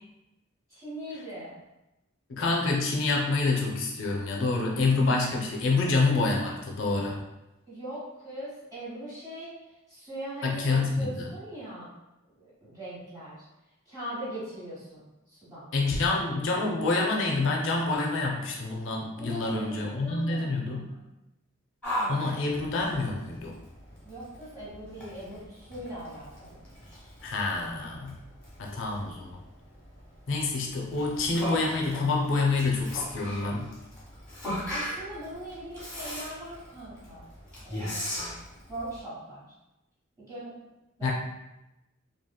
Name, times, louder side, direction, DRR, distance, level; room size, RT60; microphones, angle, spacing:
voice 1, 0.7-1.6 7.7-9.5 9.9-11.9 12.4-13.4 13.9-15.6 19.2-21.1 24.0-26.6 34.7-37.2 37.6-38.3 38.7-39.5 40.2-40.5 41.0-41.1, right 1 dB, 20° right, -11 dB, 1.0 m, -40 dB
voice 2, 2.3-7.2 10.4-11.3 15.7-20.9 22.1-23.5 27.2-28.2 28.6-29.4 30.3-33.7 41.0-41.1, left 3 dB, 65° left, -1 dB, 0.5 m, -27 dB
Yell, 21.8-39.0, equal, 5° left, 1.1 m, -39 dB
2.9 x 2.7 x 2.2 m, 0.95 s
head